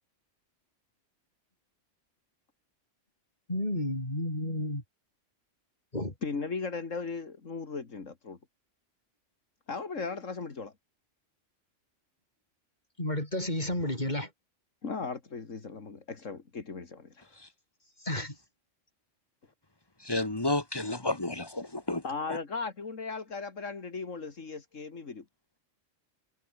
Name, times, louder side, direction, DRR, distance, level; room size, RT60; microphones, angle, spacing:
voice 1, 3.5-4.8 5.9-6.1 13.0-14.3 18.0-18.4, left 1 dB, 35° left, 6.8 m, -31 dB
voice 2, 6.2-8.4 9.7-10.7 14.8-17.3 22.0-25.2, left 4 dB, 85° left, 2.7 m, -37 dB
voice 3, 20.0-22.0 22.3-22.4, left 2 dB, 20° left, 2.1 m, -31 dB
omnidirectional pair, 1.3 m